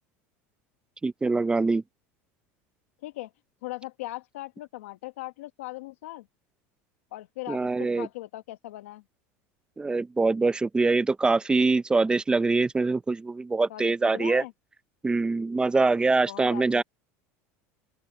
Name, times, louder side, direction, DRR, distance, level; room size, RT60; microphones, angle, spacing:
voice 1, 1.0-1.8 7.5-8.1 9.8-14.4 15.0-16.8, right 3 dB, 15° right, 0.6 m, -24 dB
voice 2, 3.6-6.2 7.1-9.0 13.7-14.5 16.3-16.8, left 18 dB, 90° left, 1.3 m, -39 dB
open air
supercardioid pair, 120°, 7 cm